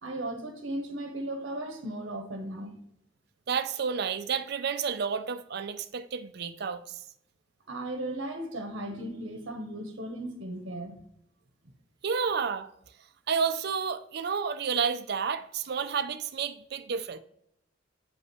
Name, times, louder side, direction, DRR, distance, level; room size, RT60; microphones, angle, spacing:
voice 1, 0.0-2.8 7.7-11.0, right 1 dB, 75° right, 0.9 m, -36 dB
voice 2, 3.5-7.0 12.0-12.7 13.3-17.2, right 6 dB, 55° right, 0.5 m, -30 dB
8.1 x 5.5 x 3.1 m
head